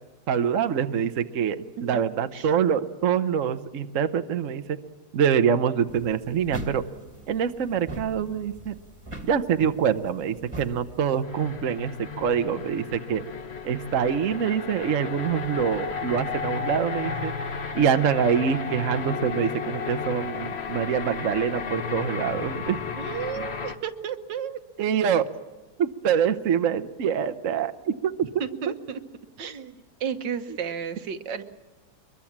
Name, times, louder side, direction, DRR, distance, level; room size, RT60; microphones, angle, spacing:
voice 1, 0.3-4.8 5.1-6.8 7.3-8.7 9.3-13.2 13.6-17.3 17.7-22.8 24.8-25.2 25.8-28.1, right 7 dB, 50° right, 9 dB, 1.1 m, -25 dB
sound 1, 5.9-11.2, right 2 dB, 15° right, 1.9 m, -41 dB
sound 2, 11.2-23.8, left 6 dB, 40° left, 1.2 m, -33 dB
voice 2, 23.0-24.6 28.4-29.0 29.4-29.7 30.0-31.4, right 7 dB, 70° right, 9 dB, 1.7 m, -32 dB
23.5 x 22.5 x 7.3 m, 1.3 s
omnidirectional pair, 2.1 m